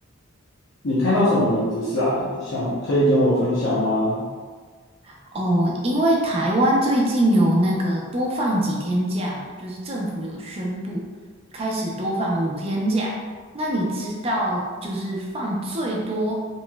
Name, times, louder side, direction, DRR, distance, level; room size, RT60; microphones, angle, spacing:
voice 1, 0.8-4.2, left 1 dB, 65° left, -10 dB, 0.7 m, -21 dB
voice 2, 5.1-11.1 11.5-13.1 13.5-16.4, right 1 dB, 30° right, -3 dB, 0.5 m, -23 dB
3.0 x 2.9 x 2.2 m, 1.5 s
head